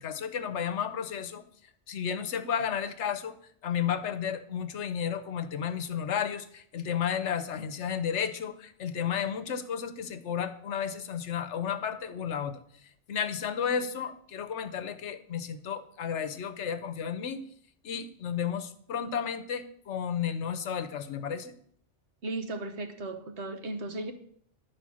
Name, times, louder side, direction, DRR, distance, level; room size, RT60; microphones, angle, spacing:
voice 1, 0.0-1.4 1.9-3.4 3.6-12.6 13.1-17.4 17.8-21.5, left 8 dB, 80° left, 12 dB, 1.1 m, -32 dB
voice 2, 22.2-24.1, right 2 dB, 70° right, 7 dB, 1.3 m, -36 dB
10.5 x 4.8 x 6.2 m, 0.62 s
omnidirectional pair, 1.2 m